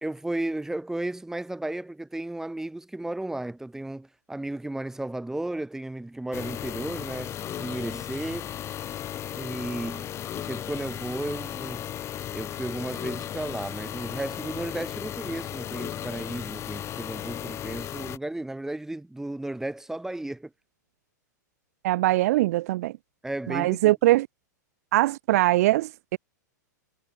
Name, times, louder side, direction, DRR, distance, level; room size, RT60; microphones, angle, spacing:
voice 1, 0.0-8.5 9.4-11.9 12.3-20.5 23.2-23.9, right 1 dB, 5° right, 3.9 m, -34 dB
sound 1, 6.3-18.2, left 11 dB, 30° left, 1.4 m, -35 dB
voice 2, 21.8-22.9 23.5-24.3 24.9-26.2, right 17 dB, 55° right, 0.7 m, -22 dB
hypercardioid pair, 105°, 10 cm